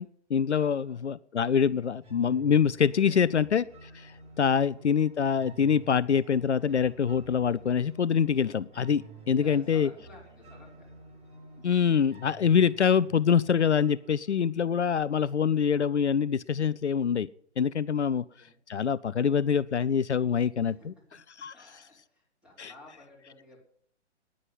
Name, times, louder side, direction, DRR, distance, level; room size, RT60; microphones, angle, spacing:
voice 1, 0.0-9.9 11.6-17.3 17.6-18.2 18.7-20.9 21.4-21.5 22.6-22.7, left 7 dB, 75° left, 17 dB, 0.6 m, -25 dB
voice 2, 0.6-1.2 1.5-2.0 2.9-3.3 9.3-10.9 18.2-18.6 20.6-20.9 21.5-23.6, left 2 dB, 5° right, -3 dB, 5.2 m, -54 dB
sound 1, 2.0-15.0, right 3 dB, 30° right, 5.5 m, -52 dB
9.9 x 9.7 x 9.4 m, 0.62 s
figure-of-eight pair, 120°, 35 cm